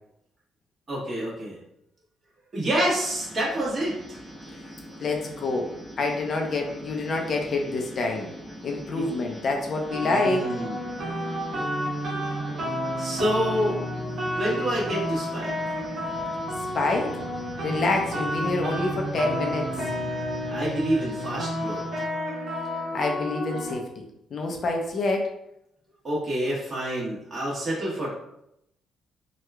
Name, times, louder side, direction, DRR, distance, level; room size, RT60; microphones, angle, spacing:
voice 1, 0.9-1.6 2.5-4.2 9.0-9.1 10.0-10.8 13.0-13.8 14.3-15.5 20.5-21.8 26.0-28.1, right 1 dB, 35° right, -6 dB, 1.2 m, -27 dB
sound 1, 2.9-22.0, equal, 10° right, 0.9 m, -42 dB
voice 2, 5.0-8.3 8.6-10.5 16.7-17.2 17.6-19.7 22.9-25.3, left 3 dB, 55° left, 2 dB, 0.6 m, -27 dB
sound 2, 9.9-23.7, equal, 60° right, 1.0 m, -31 dB
2.9 x 2.3 x 3.3 m, 0.79 s
cardioid pair, 90°, 0 cm